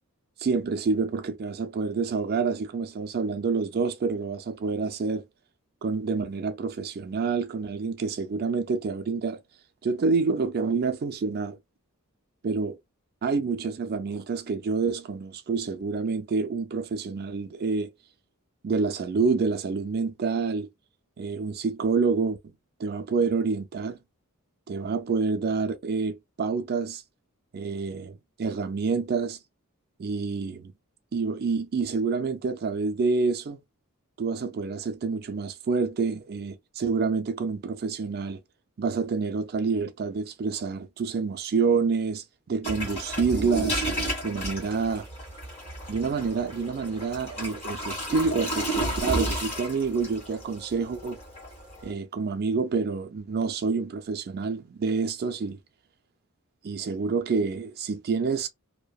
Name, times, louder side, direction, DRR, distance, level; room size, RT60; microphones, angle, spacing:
voice 1, 0.4-5.2 5.8-9.4 9.8-11.6 12.4-12.8 13.2-17.9 18.6-20.7 21.2-22.4 22.8-24.0 24.7-27.0 27.5-29.4 30.0-30.7 31.1-33.6 34.2-38.4 38.8-43.9 44.2-45.1 45.9-51.2 51.8-55.6 56.6-58.5, right 4 dB, 45° right, 0.4 m, -28 dB
sound 1, 42.6-51.9, right 1 dB, 30° left, 1.6 m, -32 dB
2.7 x 2.1 x 2.2 m
head